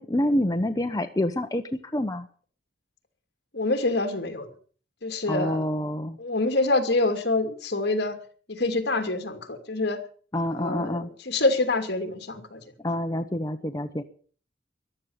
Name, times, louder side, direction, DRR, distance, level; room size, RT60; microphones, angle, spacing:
voice 1, 0.0-1.6 1.9-2.3 5.3-6.2 10.3-11.1 12.8-14.0, left 1 dB, 20° left, 7 dB, 0.9 m, -27 dB
voice 2, 3.5-4.5 5.0-5.6 6.2-8.2 8.5-10.0 10.5-12.6, left 2 dB, 60° left, 7 dB, 2.6 m, -26 dB
14.5 x 11.5 x 7.2 m, 0.43 s
head